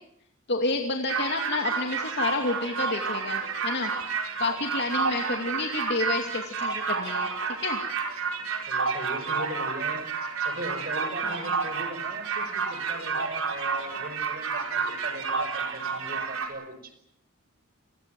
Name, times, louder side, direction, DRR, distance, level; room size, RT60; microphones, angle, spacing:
voice 1, 0.5-3.9 4.4-7.3 7.6-7.8 11.2-11.5, left 3 dB, 55° left, 3 dB, 2.5 m, -30 dB
sound 1, 1.1-16.5, right 5 dB, 80° right, 4.9 m, -30 dB
voice 2, 8.7-10.1 10.4-16.9, right 1 dB, 45° right, 10 dB, 4.9 m, -39 dB
28.5 x 21.0 x 7.6 m, 0.74 s
head